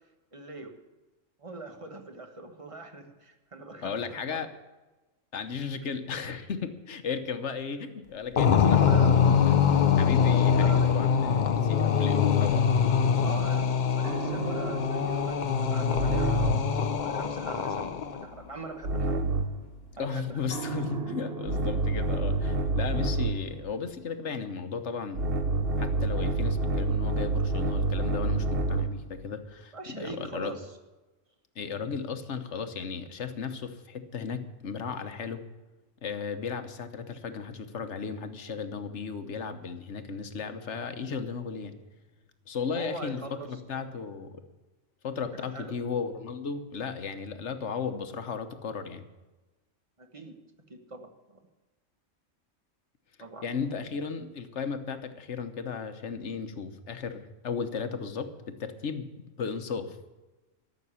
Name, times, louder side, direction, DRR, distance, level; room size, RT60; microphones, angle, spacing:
voice 1, 0.3-0.7 1.4-4.4 8.9-9.2 10.6-11.0 13.2-19.2 19.9-20.4 29.7-30.7 42.7-44.0 45.5-45.8 50.0-50.4 50.7-51.4 53.2-53.5 53.9-54.0, right 3 dB, 25° right, 5 dB, 1.3 m, -42 dB
voice 2, 3.8-4.5 5.3-9.6 10.0-12.6 20.0-25.4 25.8-30.5 31.5-35.4 36.0-41.7 42.5-43.2 43.5-44.4 45.0-49.1 53.4-59.0 59.4-60.0, left 5 dB, 70° left, 9 dB, 1.3 m, -35 dB
sound 1, 8.4-18.2, left 7 dB, 45° left, 0.7 m, -24 dB
sound 2, 14.0-16.8 18.8-19.7 20.5-23.5 25.1-29.0, right 2 dB, 55° right, 1.1 m, -29 dB
13.5 x 6.6 x 10.0 m, 1.1 s
omnidirectional pair, 1.3 m